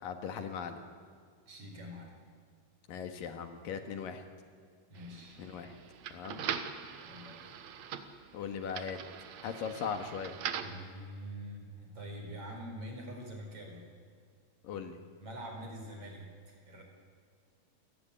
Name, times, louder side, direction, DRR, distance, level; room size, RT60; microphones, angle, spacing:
voice 1, 0.0-0.8 2.9-4.2 5.4-5.8 6.1-6.5 8.3-9.0 9.4-10.4 14.6-15.0, left 6 dB, 65° left, 7 dB, 3.3 m, -39 dB
voice 2, 1.5-2.2 4.9-5.4 7.0-7.6 9.4-9.8 10.6-13.9 15.2-16.8, equal, 35° right, 2 dB, 5.4 m, -45 dB
sound 1, 5.0-10.8, right 8 dB, 60° right, 2.1 m, -42 dB
29.0 x 15.0 x 10.0 m, 2.1 s
omnidirectional pair, 4.4 m